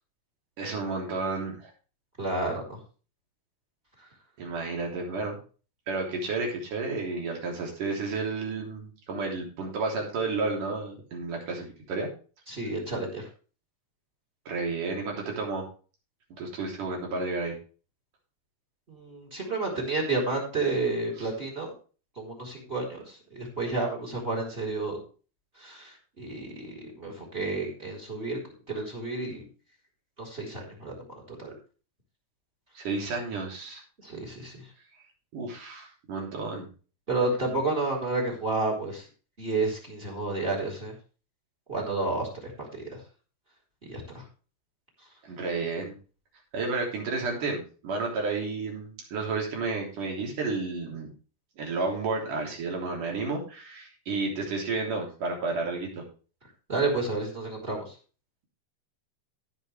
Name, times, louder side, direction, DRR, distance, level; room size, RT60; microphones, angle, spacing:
voice 1, 0.6-1.7 4.4-5.4 5.9-12.1 14.5-15.6 16.4-17.6 21.2-21.3 32.7-33.8 35.3-36.7 45.2-46.0 46.5-51.1 51.6-56.0, right 3 dB, 55° right, 0 dB, 4.7 m, -31 dB
voice 2, 2.2-2.8 12.5-13.3 18.9-21.7 22.2-25.0 25.6-28.4 28.7-29.4 30.2-31.5 34.0-34.6 37.1-39.0 39.4-40.9 41.7-43.0 43.9-44.2 56.7-57.9, right 3 dB, 15° right, 3 dB, 3.9 m, -31 dB
17.0 x 6.5 x 3.3 m, 0.36 s
omnidirectional pair, 4.4 m